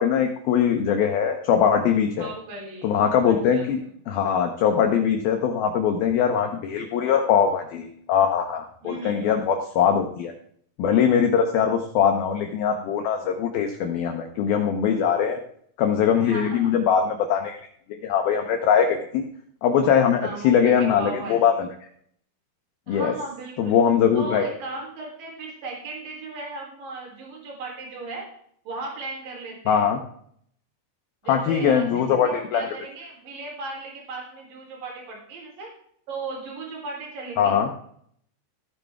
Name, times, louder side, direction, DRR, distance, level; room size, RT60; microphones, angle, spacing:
voice 1, 0.0-2.3 2.8-3.8 4.1-10.3 10.8-15.4 15.8-17.6 18.0-19.2 19.6-21.5 22.9-23.1 23.6-24.5 29.7-30.0 31.3-32.7 37.4-37.7, left 7 dB, 90° left, 4 dB, 2.1 m, -21 dB
voice 2, 2.2-3.9 8.8-9.5 16.3-16.7 20.2-21.6 22.9-23.8 24.1-28.3 28.6-29.9 31.2-35.7 36.1-37.6, right 2 dB, 50° right, -1 dB, 5.0 m, -36 dB
15.5 x 9.2 x 3.6 m, 0.64 s
omnidirectional pair, 5.6 m